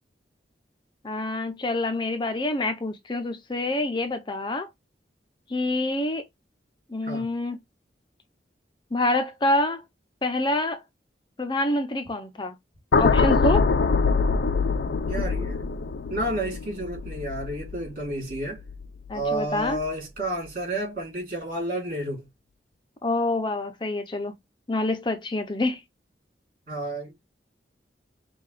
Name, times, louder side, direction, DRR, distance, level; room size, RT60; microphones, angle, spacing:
voice 1, 1.0-4.7 5.5-6.2 6.9-7.6 8.9-9.8 10.2-10.8 11.4-12.6 13.0-13.7 19.1-19.8 23.0-24.3 24.7-25.8, left 2 dB, 25° left, 0.6 m, -26 dB
sound 1, 12.9-19.2 19.6-19.9, left 4 dB, 70° left, 0.5 m, -24 dB
voice 2, 15.1-15.6 16.1-18.6 19.1-22.3 26.7-27.1, right 1 dB, 50° right, 3.1 m, -31 dB
5.6 x 2.3 x 3.2 m
head